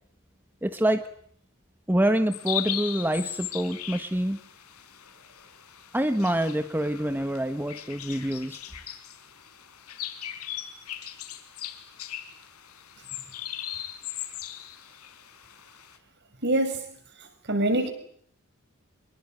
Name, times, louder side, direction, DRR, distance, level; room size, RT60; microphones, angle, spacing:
voice 1, 0.6-1.1 1.9-4.4 5.9-8.6, right 1 dB, 10° right, 9 dB, 1.3 m, -26 dB
sound 1, 2.3-16.0, left 12 dB, 85° left, 4.8 m, -38 dB
voice 2, 16.4-16.8 17.5-17.9, right 1 dB, 50° right, 8 dB, 6.2 m, -24 dB
26.0 x 22.0 x 9.3 m, 0.63 s
head